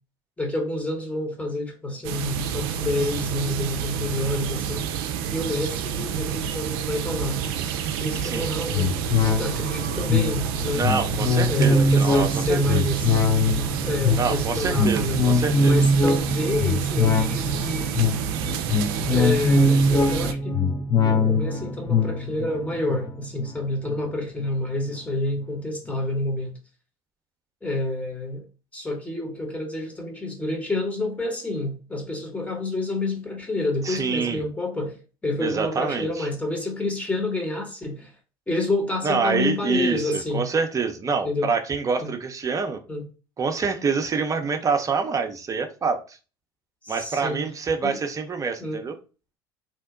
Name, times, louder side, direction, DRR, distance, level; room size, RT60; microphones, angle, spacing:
voice 1, 0.4-4.9 5.3-7.4 8.0-9.0 9.4-10.9 11.5-13.1 13.8-15.2 15.6-17.9 19.1-20.6 21.0-26.6 27.6-28.4 28.7-38.1 38.5-40.5 41.2-41.5 42.0-42.1 42.9-43.1 46.8-47.4 47.8-48.0 48.6-48.8, left 2 dB, 10° left, 1.1 m, -28 dB
sound 1, 2.0-20.3, right 8 dB, 70° right, 0.4 m, -29 dB
sound 2, 8.7-24.5 24.9-25.0, left 2 dB, 30° left, 0.6 m, -23 dB
voice 2, 10.7-12.8 14.2-15.8 18.7-18.9 33.8-34.4 35.4-36.3 39.0-42.8 43.4-46.2 46.9-48.9, right 5 dB, 25° right, 0.6 m, -26 dB
2.8 x 2.1 x 3.7 m
hypercardioid pair, 75°, 12 cm